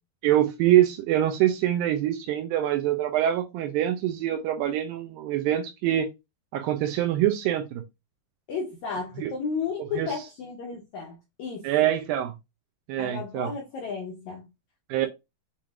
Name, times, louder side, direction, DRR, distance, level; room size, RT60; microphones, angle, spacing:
voice 1, 0.2-6.1 6.5-7.8 9.2-9.3 10.0-10.1 11.6-12.3 12.9-13.5 14.9-15.1, right 12 dB, 80° right, 2.2 m, -24 dB
voice 2, 8.5-11.9 13.0-14.5, left 5 dB, 80° left, 1.7 m, -33 dB
7.1 x 3.1 x 2.4 m
omnidirectional pair, 4.4 m